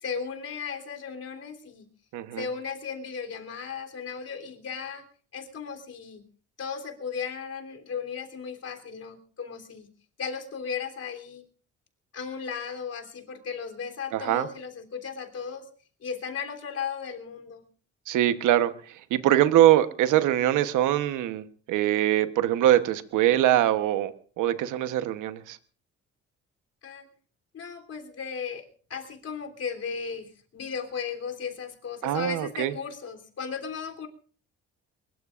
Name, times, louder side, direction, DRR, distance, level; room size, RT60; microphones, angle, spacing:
voice 1, 0.0-1.9 2.4-5.1 5.3-6.2 6.6-9.9 10.2-11.4 12.1-15.6 16.0-17.6 26.8-27.0 27.5-34.1, left 6 dB, 55° left, 4 dB, 3.4 m, -36 dB
voice 2, 2.1-2.4 14.1-14.5 18.1-25.6 32.0-32.7, right 12 dB, 90° right, 11 dB, 1.1 m, -23 dB
23.0 x 21.5 x 2.5 m, 0.40 s
cardioid pair, 90°, 30 cm